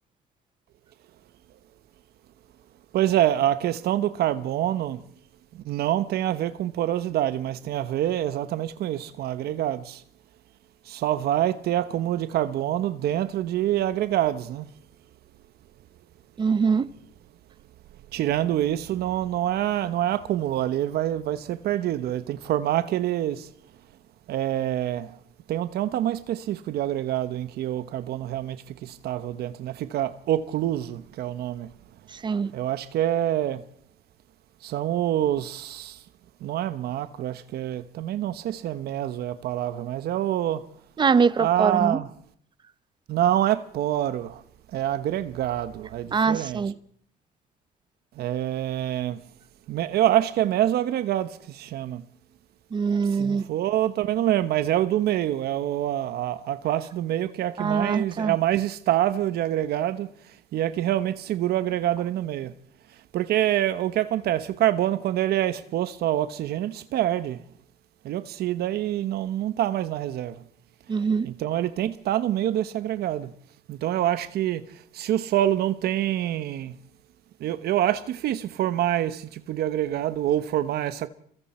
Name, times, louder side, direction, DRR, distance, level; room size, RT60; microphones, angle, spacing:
voice 1, 2.9-5.0 5.5-10.0 10.9-14.7 18.1-23.5 24.3-25.2 25.5-31.7 32.5-33.6 34.6-36.0 36.4-40.7 41.4-42.1 43.1-44.4 44.7-46.6 48.2-49.2 49.7-52.0 53.1-60.1 60.5-62.5 63.1-67.4 68.0-70.4 71.2-73.3 73.7-74.7 74.9-76.7 77.4-81.1, right 12 dB, 70° right, 1.1 m, -26 dB
voice 2, 16.4-16.9 32.2-32.5 41.0-42.0 46.1-46.7 52.7-53.4 57.6-58.4 70.9-71.3, right 5 dB, 25° right, 0.8 m, -23 dB
28.5 x 22.5 x 4.4 m
cardioid pair, 110°, 17 cm